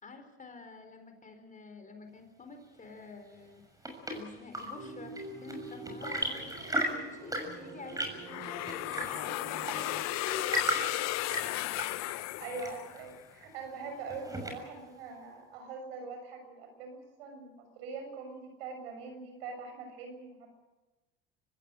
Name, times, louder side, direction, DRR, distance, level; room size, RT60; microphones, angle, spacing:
voice 1, 0.0-3.6 4.1-5.1 5.4-11.0 13.7-14.1, left 4 dB, 25° left, 6 dB, 4.5 m, -48 dB
Chirp tweet / Engine / Tap, 3.4-14.9, right 1 dB, 10° right, 6.7 m, -38 dB
sound 1, 4.7-10.1, right 2 dB, 45° right, 5.3 m, -46 dB
sound 2, 8.3-13.2, left 17 dB, 65° left, 0.8 m, -35 dB
voice 2, 12.0-20.5, right 4 dB, 85° right, 5 dB, 7.1 m, -43 dB
25.5 x 15.0 x 9.0 m, 1.1 s
supercardioid pair, 80°, 29 cm